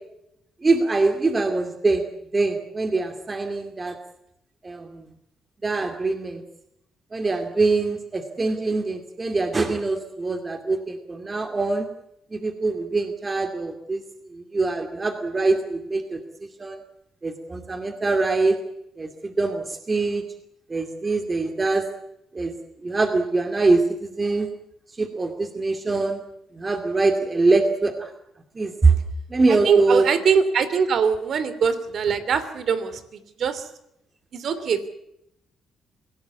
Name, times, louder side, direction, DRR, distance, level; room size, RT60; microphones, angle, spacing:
voice 1, 0.6-2.0 2.3-4.0 4.6-5.1 5.6-6.4 7.1-11.9 12.3-14.0 14.3-16.2 16.6-16.8 17.2-18.6 19.0-20.2 20.7-21.9 22.3-22.6 22.8-24.5 25.0-26.2 26.5-28.1 28.6-28.9 29.3-30.1, right 3 dB, 25° right, 6 dB, 2.5 m, -23 dB
voice 2, 29.5-33.0 33.4-33.7 34.3-34.9, right 6 dB, 60° right, 14 dB, 2.8 m, -22 dB
25.0 x 17.0 x 8.3 m, 0.81 s
cardioid pair, 90°, 0 cm